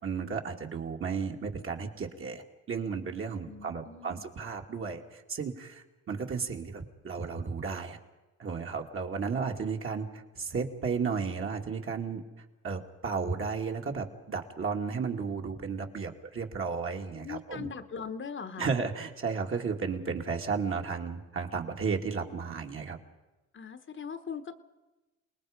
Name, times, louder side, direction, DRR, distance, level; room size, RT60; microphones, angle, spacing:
voice 1, 0.0-8.0 8.4-12.2 12.6-17.7 18.6-23.0, right 5 dB, 45° right, 2 dB, 2.4 m, -33 dB
voice 2, 3.5-4.2 17.1-18.7 23.5-24.5, left 6 dB, 40° left, 9 dB, 1.2 m, -41 dB
28.0 x 19.5 x 5.2 m, 1.1 s
cardioid pair, 90°, 30 cm